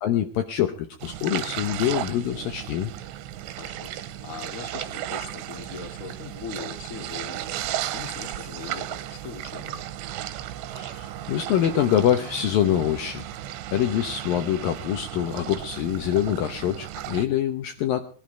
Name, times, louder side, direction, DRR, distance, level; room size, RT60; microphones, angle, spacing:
voice 1, 0.0-2.9 10.7-13.3 13.7-18.0, left 10 dB, 70° left, 7 dB, 2.3 m, -25 dB
sound 1, 1.0-17.3, right 12 dB, 85° right, 3.1 m, -35 dB
voice 2, 3.6-9.9, left 6 dB, 40° left, 4 dB, 1.2 m, -40 dB
21.5 x 11.5 x 4.5 m, 0.42 s
omnidirectional pair, 5.1 m